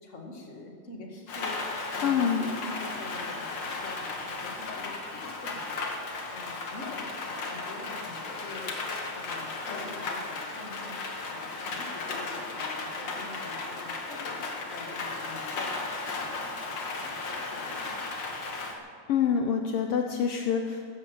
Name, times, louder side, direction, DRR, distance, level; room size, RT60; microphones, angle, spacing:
voice 1, 0.0-8.7 9.1-11.0 11.3-14.4 14.7-16.4 16.7-18.0, left 3 dB, 30° left, 1 dB, 1.8 m, -45 dB
Rain, 1.3-18.7, left 3 dB, 45° left, 1.6 m, -35 dB
voice 2, 2.0-2.5 19.1-20.8, left 7 dB, 75° left, 4 dB, 1.3 m, -26 dB
15.5 x 14.0 x 5.7 m, 2.3 s
omnidirectional pair, 3.5 m